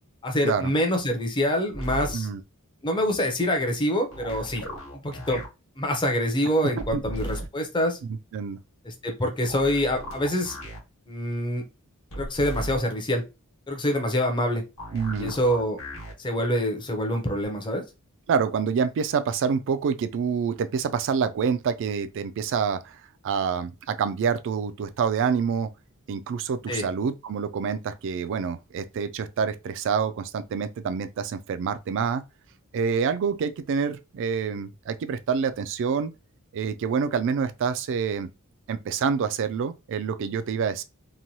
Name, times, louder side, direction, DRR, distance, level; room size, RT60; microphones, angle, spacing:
voice 1, 0.2-2.3 2.8-4.6 4.9-5.4 5.8-8.0 8.8-10.6 11.1-11.6 12.2-13.2 13.7-14.6 15.2-15.8 16.2-17.8 26.7-26.8, left 1 dB, 20° left, 0.6 m, -25 dB
sound 1, 1.7-2.1 4.1-5.5 6.8-7.5 9.4-10.8 12.1-12.8 14.8-16.1 17.4-17.5, right 1 dB, 65° left, 1.2 m, -36 dB
voice 2, 14.9-15.3 18.3-23.0 23.2-25.7 26.1-32.2 32.7-36.1 36.5-38.3 38.7-40.8, right 6 dB, 60° right, 0.3 m, -27 dB
3.0 x 2.2 x 2.6 m
head